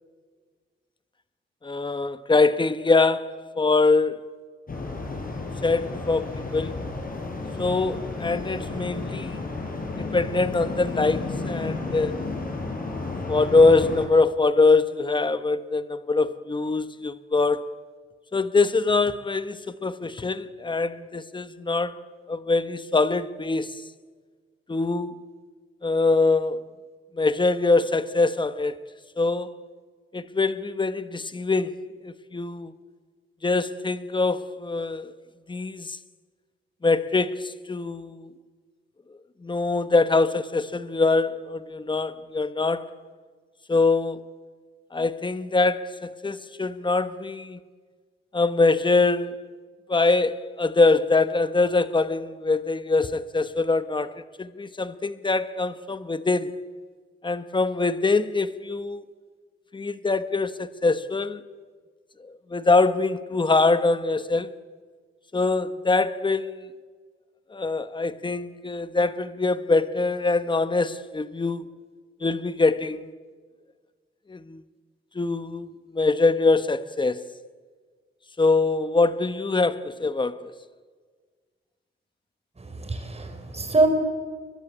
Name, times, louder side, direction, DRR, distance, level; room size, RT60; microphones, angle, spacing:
voice 1, 1.6-4.2 5.6-6.8 7.6-9.4 9.9-12.2 13.3-17.7 18.3-22.0 22.3-23.8 24.7-25.2 25.8-26.6 27.1-28.7 29.2-29.5 30.1-32.7 33.4-35.1 35.5-36.0 36.8-38.3 39.4-42.9 43.7-44.3 44.9-47.6 48.3-49.4 49.9-56.6 57.2-59.1 59.7-61.4 62.2-64.5 65.3-66.7 67.5-71.8 72.2-73.1 74.3-74.6 75.1-77.3 78.4-80.5, left 3 dB, 20° left, 1.3 m, -23 dB
sound 1, 4.7-14.1, left 3 dB, 40° left, 6.8 m, -32 dB
voice 2, 82.6-83.9, right 3 dB, 30° right, 5.8 m, -24 dB
29.0 x 23.0 x 8.7 m
cardioid pair, 105°, 21 cm